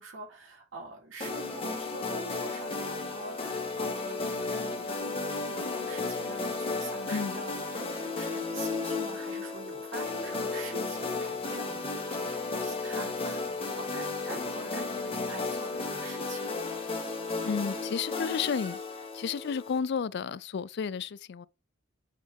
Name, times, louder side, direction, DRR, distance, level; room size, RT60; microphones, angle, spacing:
voice 1, 0.0-16.6, right 2 dB, 90° right, 3.7 m, -45 dB
sound 1, 1.2-19.8, left 3 dB, 30° left, 1.9 m, -34 dB
voice 2, 7.1-7.4 17.4-18.8 19.1-21.5, left 6 dB, 60° left, 0.4 m, -32 dB
8.4 x 4.7 x 3.6 m
head